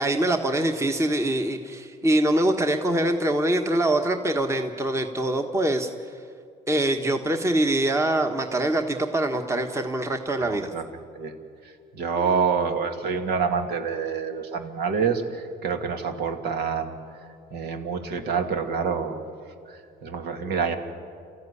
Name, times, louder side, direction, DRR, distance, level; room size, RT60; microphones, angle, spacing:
voice 1, 0.0-5.9 6.7-10.7, right 1 dB, 15° right, 5 dB, 1.4 m, -24 dB
voice 2, 10.4-10.8 11.2-11.3 12.0-17.0 17.5-19.2 20.0-20.7, right 6 dB, 70° right, 5 dB, 2.4 m, -27 dB
28.5 x 14.5 x 9.8 m, 2.4 s
cardioid pair, 110°, 17 cm